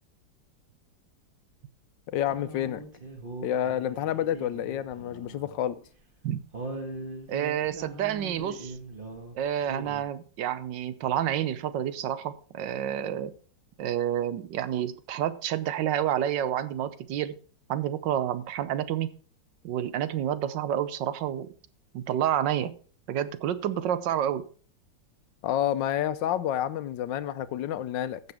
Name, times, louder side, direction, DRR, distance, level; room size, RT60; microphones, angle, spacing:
voice 1, 2.1-2.8 3.4-5.8 25.4-28.2, left 11 dB, 80° left, 1.3 m, -29 dB
sound 1, 2.3-5.6 5.8-5.9 6.5-9.3 9.6-10.0, right 2 dB, 30° right, 1.8 m, -41 dB
voice 2, 7.3-8.7 9.3-13.3 13.8-17.3 17.7-19.1 19.6-21.5 21.9-22.8 23.1-24.5, right 10 dB, 80° right, 1.4 m, -29 dB
14.5 x 6.8 x 3.5 m
omnidirectional pair, 2.0 m